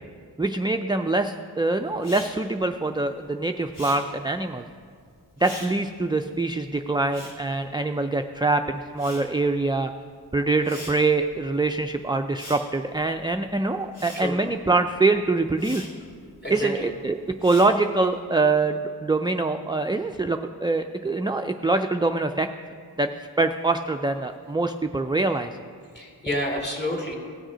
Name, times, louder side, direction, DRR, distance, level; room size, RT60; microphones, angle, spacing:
voice 1, 0.4-4.6 5.4-9.9 10.3-15.9 16.5-22.5 23.0-23.1 23.4-25.5, right 3 dB, 10° right, 6 dB, 0.3 m, -24 dB
Respiratory sounds, 2.0-8.4 8.7-18.2, left 1 dB, 85° left, 3.2 m, -44 dB
voice 2, 16.4-16.9 26.0-27.2, left 1 dB, 25° left, -1 dB, 2.5 m, -29 dB
17.5 x 6.4 x 5.0 m, 2.1 s
wide cardioid pair, 45°, 39 cm